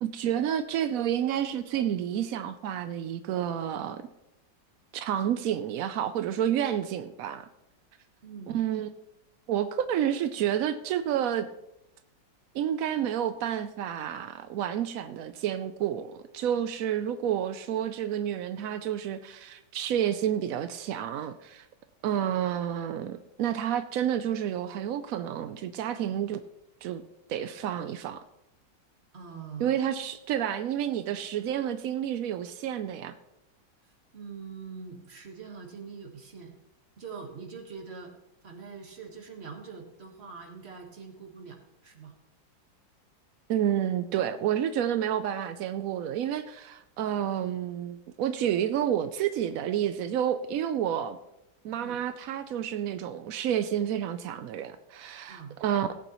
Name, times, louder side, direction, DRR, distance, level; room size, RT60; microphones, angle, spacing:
voice 1, 0.0-4.1 4.9-7.5 8.5-8.9 9.5-11.5 12.5-21.7 22.0-26.4 26.8-27.0 27.3-28.2 29.6-33.1 43.5-51.2 51.6-55.9, right 10 dB, 80° right, 0.7 m, -30 dB
voice 2, 8.2-8.6 29.1-29.8 34.1-36.5 37.0-38.1 38.4-42.2 51.8-52.0 55.3-55.6, right 5 dB, 35° right, 1.6 m, -43 dB
18.0 x 8.4 x 3.1 m
omnidirectional pair, 2.0 m